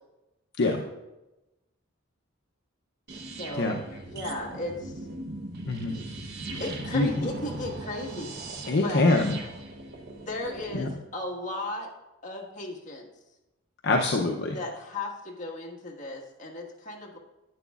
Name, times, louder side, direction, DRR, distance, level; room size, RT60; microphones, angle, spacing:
sound 1, 3.1-10.9, right 2 dB, 55° right, 0.8 m, -39 dB
voice 1, 3.4-4.9 6.6-9.1 10.1-11.9 12.2-13.1 14.5-17.2, left 1 dB, 40° left, -1 dB, 1.5 m, -36 dB
voice 2, 5.7-6.0 6.9-7.1 8.7-9.4 10.7-10.9 13.8-14.6, left 2 dB, 55° left, 1 dB, 0.6 m, -24 dB
11.0 x 9.2 x 2.4 m, 1.0 s
head